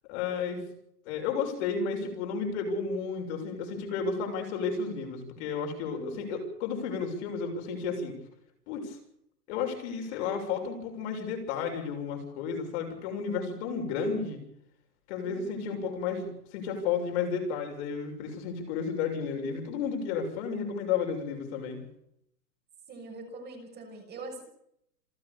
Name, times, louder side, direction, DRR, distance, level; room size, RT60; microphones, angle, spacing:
voice 1, 0.1-0.7 1.1-8.2 8.7-9.0 9.5-14.4 15.1-21.8, left 5 dB, 40° left, 4 dB, 7.0 m, -32 dB
voice 2, 5.9-6.3 15.2-15.8 22.9-24.4, right 2 dB, 20° right, 3 dB, 6.7 m, -44 dB
28.0 x 13.0 x 7.0 m, 0.73 s
hypercardioid pair, 135°, 50 cm